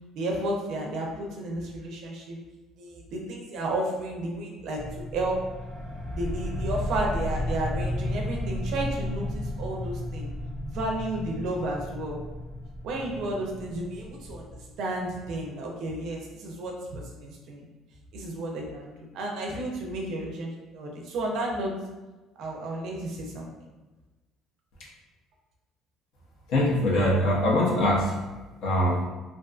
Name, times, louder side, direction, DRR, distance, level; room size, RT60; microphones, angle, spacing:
voice 1, 0.1-2.4 2.8-5.5 6.1-10.3 10.6-12.2 12.8-17.6 18.1-21.7 22.4-23.5, right 1 dB, 60° right, 0 dB, 0.4 m, -32 dB
sound 1, 4.7-14.9, left 1 dB, 5° right, 0.5 m, -33 dB
voice 2, 26.5-28.1 28.6-29.0, left 1 dB, 70° left, -4 dB, 0.5 m, -23 dB
2.4 x 2.4 x 2.3 m, 1.2 s
cardioid pair, 150°, 0 cm